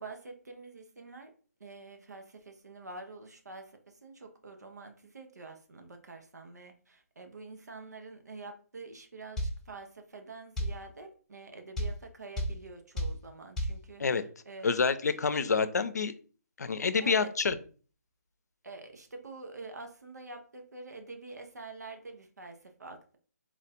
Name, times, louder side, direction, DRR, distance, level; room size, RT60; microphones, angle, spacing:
voice 1, 0.0-1.3 1.6-14.8 17.0-17.3 18.6-23.2, right 3 dB, 90° right, 5 dB, 1.0 m, -47 dB
sound 1, 9.4-9.6 10.6-10.8 11.8-12.0 12.4-12.6 13.0-13.2 13.6-13.8, equal, 5° left, 0.6 m, -30 dB
voice 2, 14.6-16.1 16.6-17.5, left 5 dB, 80° left, 12 dB, 0.6 m, -27 dB
3.8 x 2.5 x 4.4 m, 0.40 s
hypercardioid pair, 155°, 9 cm